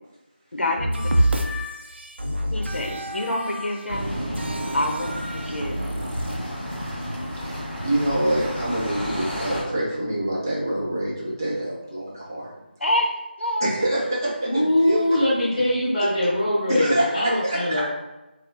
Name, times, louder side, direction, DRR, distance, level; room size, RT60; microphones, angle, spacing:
voice 1, 0.5-1.5 2.5-4.1 4.7-5.8 6.3-6.4 12.8-13.1 13.4-13.7, left 1 dB, 85° left, 2 dB, 0.6 m, -27 dB
sound 1, 0.8-6.4, equal, 75° right, 0.5 m, -28 dB
sound 2, 3.9-9.6, equal, 5° left, 1.2 m, -31 dB
voice 2, 7.3-12.5 13.6-15.2 16.0-16.1 16.7-17.8, right 1 dB, 20° right, -6 dB, 0.5 m, -26 dB
voice 3, 14.4-17.9, left 1 dB, 35° left, -9 dB, 1.1 m, -22 dB
4.1 x 2.0 x 2.4 m, 1.0 s
figure-of-eight pair, 175°, 6 cm